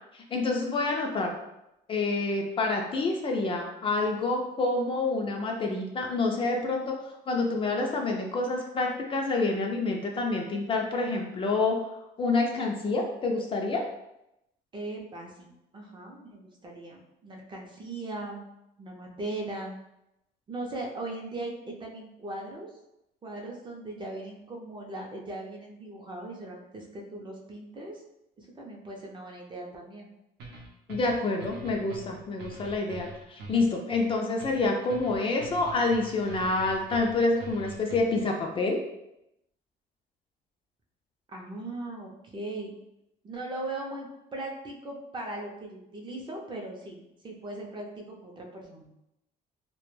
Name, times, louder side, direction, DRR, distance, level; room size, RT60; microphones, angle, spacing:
voice 1, 0.1-1.3 1.9-7.0 7.3-11.8 12.2-13.8 30.9-38.8, left 3 dB, 30° left, 1 dB, 0.4 m, -27 dB
voice 2, 14.7-18.4 18.8-19.8 20.5-22.7 23.2-28.0 28.4-30.1 41.3-42.7 43.2-48.9, right 2 dB, 30° right, 0 dB, 0.5 m, -39 dB
sound 1, 30.4-38.3, right 3 dB, 80° right, 0.6 m, -44 dB
2.1 x 2.0 x 3.1 m, 0.86 s
cardioid pair, 110°, 17 cm